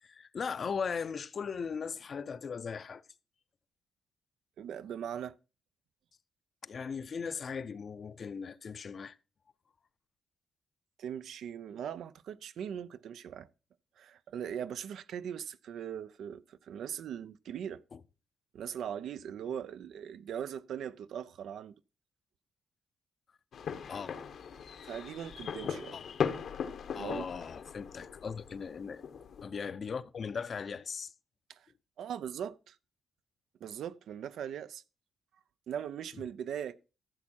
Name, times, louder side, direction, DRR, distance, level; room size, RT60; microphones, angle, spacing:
voice 1, 0.0-3.0 6.6-9.2 17.9-18.0 23.9-24.1 25.9-26.0 26.9-29.0 29.4-31.1, left 6 dB, 45° left, 0.6 m, -38 dB
voice 2, 4.6-5.3 11.0-13.5 14.0-17.8 18.5-21.7 24.8-26.0 26.9-27.3 31.5-31.7 32.0-32.8 33.6-34.8 35.7-36.8, right 9 dB, 75° right, 0.5 m, -40 dB
sound 1, 23.5-29.4, left 7 dB, 65° left, 1.1 m, -39 dB
13.0 x 7.1 x 4.4 m
cardioid pair, 120°, 0 cm